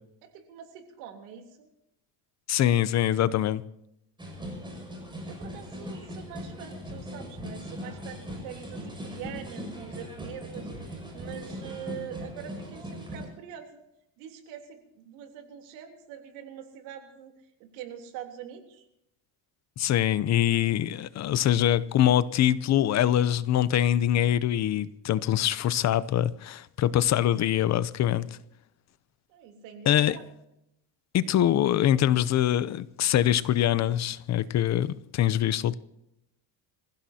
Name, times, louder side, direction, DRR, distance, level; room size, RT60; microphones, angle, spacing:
voice 1, 0.2-1.7 4.3-4.7 5.3-13.8 14.2-18.9 29.3-30.2, right 9 dB, 90° right, 3.4 m, -44 dB
voice 2, 2.5-3.6 19.8-28.3 29.9-30.2 31.1-35.7, left 11 dB, 40° left, 0.7 m, -24 dB
sound 1, 4.2-13.3, equal, 10° right, 6.0 m, -39 dB
26.0 x 16.0 x 2.8 m
cardioid pair, 140°, 43 cm